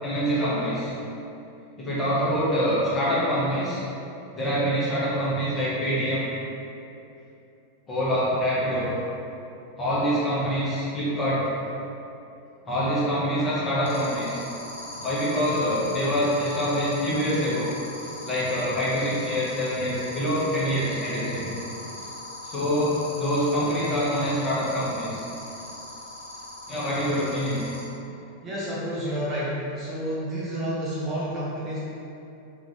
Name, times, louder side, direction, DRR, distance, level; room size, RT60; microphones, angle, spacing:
voice 1, 0.0-0.9 1.8-3.8 4.3-6.3 7.9-8.9 9.8-11.4 12.6-14.4 14.9-17.7 18.2-21.5 22.4-25.2 26.7-27.6, equal, 20° left, -8 dB, 0.8 m, -25 dB
sound 1, 13.9-27.8, left 2 dB, 55° left, 0.7 m, -40 dB
voice 2, 28.4-31.8, equal, 25° right, -8 dB, 0.6 m, -30 dB
3.0 x 2.4 x 2.6 m, 2.7 s
figure-of-eight pair, 90°, 0 cm